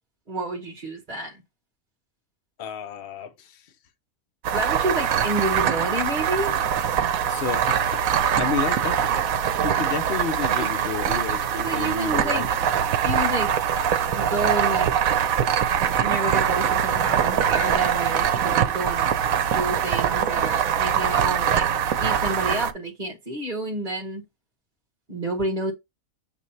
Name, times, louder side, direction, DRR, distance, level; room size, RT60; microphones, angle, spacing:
voice 1, 0.3-1.4 4.5-6.6 10.6-10.7 11.5-12.5 13.0-13.6 14.1-14.9 15.9-19.1 19.5-21.6 22.0-24.2 25.1-25.7, right 1 dB, 35° right, 1.5 m, -29 dB
voice 2, 2.6-3.6 7.3-8.0 8.4-9.2 9.6-12.5, left 6 dB, 45° left, 1.1 m, -31 dB
sound 1, 4.4-22.7, right 8 dB, 75° right, 1.1 m, -23 dB
7.3 x 3.2 x 4.1 m
omnidirectional pair, 1.5 m